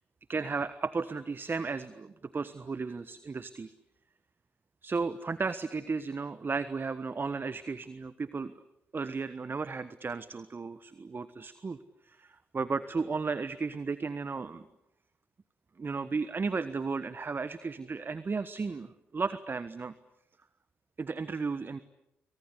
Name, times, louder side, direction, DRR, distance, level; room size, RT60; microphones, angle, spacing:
voice 1, 0.3-3.7 4.8-8.6 8.9-14.7 15.8-19.9 21.0-21.8, right 4 dB, 35° right, 14 dB, 1.3 m, -34 dB
28.5 x 24.5 x 8.4 m, 0.87 s
hypercardioid pair, 45°, 6 cm